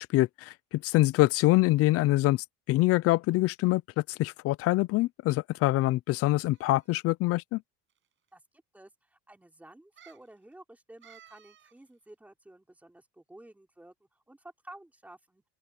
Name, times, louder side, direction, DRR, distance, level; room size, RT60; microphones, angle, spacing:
voice 1, 0.0-7.6, left 18 dB, 50° left, 0.4 m, -25 dB
sound 1, 6.5-7.1 7.9-8.0 8.3-8.4 10.0-10.3 11.0-11.8 12.1-12.2, right 10 dB, 40° right, 7.3 m, -57 dB
voice 2, 8.7-15.4, right 1 dB, 5° right, 3.2 m, -52 dB
open air
cardioid pair, 155°, 32 cm